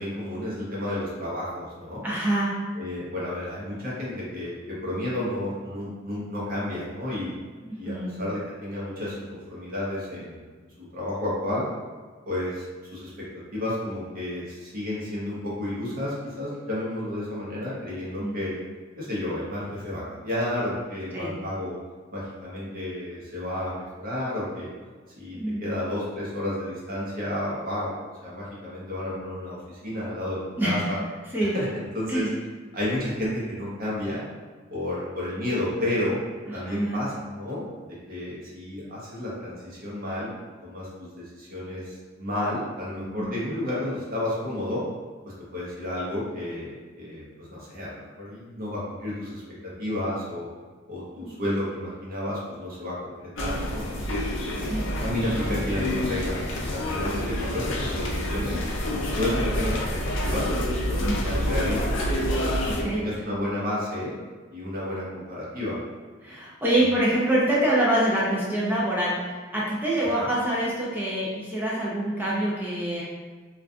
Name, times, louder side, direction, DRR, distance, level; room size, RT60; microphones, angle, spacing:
voice 1, 0.0-2.0 2.7-7.3 7.8-10.4 10.8-11.6 12.3-12.7 12.9-13.2 13.5-18.6 19.0-21.8 22.1-24.7 25.2-31.0 31.4-32.3 32.7-34.2 34.7-36.2 36.5-40.3 40.6-44.8 45.5-50.5 50.9-54.2 55.0-58.6 59.1-60.5 60.8-62.4 63.0-64.1 64.5-65.8 70.1-70.3, left 1 dB, 50° right, -7 dB, 0.7 m, -31 dB
voice 2, 2.0-2.5 7.6-8.1 18.2-18.3 21.1-21.3 25.3-25.7 30.6-30.9 31.3-31.6 32.1-32.3 36.7-37.0 43.2-43.3 51.2-51.3 54.6-54.8 61.0-61.2 62.6-63.0 66.2-69.1 69.5-73.0, right 1 dB, 10° right, -7 dB, 0.4 m, -25 dB
sound 1, 53.4-62.8, equal, 70° left, 0.4 m, -27 dB
2.5 x 2.3 x 2.3 m, 1.4 s
head